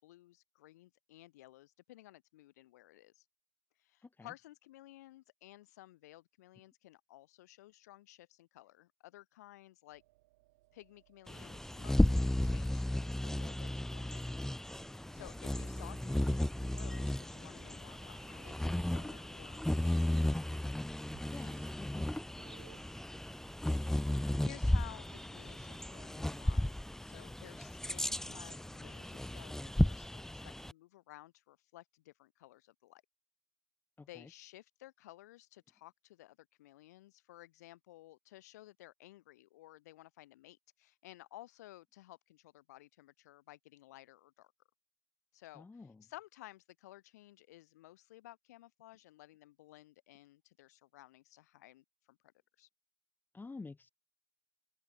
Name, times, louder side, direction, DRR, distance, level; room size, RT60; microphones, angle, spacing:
voice 1, 0.0-3.2 3.8-10.0 10.7-14.4 14.9-20.2 24.4-26.7 27.0-33.0 34.1-44.5 45.3-52.2 52.6-52.7, left 16 dB, 80° left, 3.6 m, -56 dB
voice 2, 4.0-4.3 15.2-15.4 21.3-22.3 34.0-34.3 45.5-46.0 53.3-53.9, left 3 dB, 20° left, 3.2 m, -50 dB
sound 1, 9.9-25.7, right 21 dB, 75° right, 7.5 m, -66 dB
Bird vocalization bird call bird song, 11.3-30.7, left 1 dB, 5° left, 1.0 m, -34 dB
open air
hypercardioid pair, 60°, 9 cm